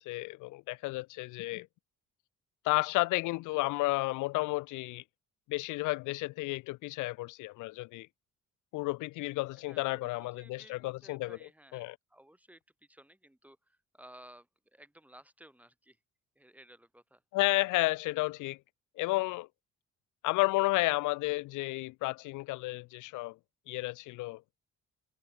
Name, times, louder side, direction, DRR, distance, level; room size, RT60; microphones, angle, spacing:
voice 1, 0.1-1.7 2.6-5.0 5.5-8.1 8.7-11.4 11.7-12.0 17.3-18.6 19.0-19.5 20.2-23.4 23.7-24.4, left 21 dB, 90° left, 0.5 m, -32 dB
voice 2, 9.6-16.0 16.4-17.2, right 1 dB, 5° right, 2.6 m, -57 dB
cardioid pair, 90°, 30 cm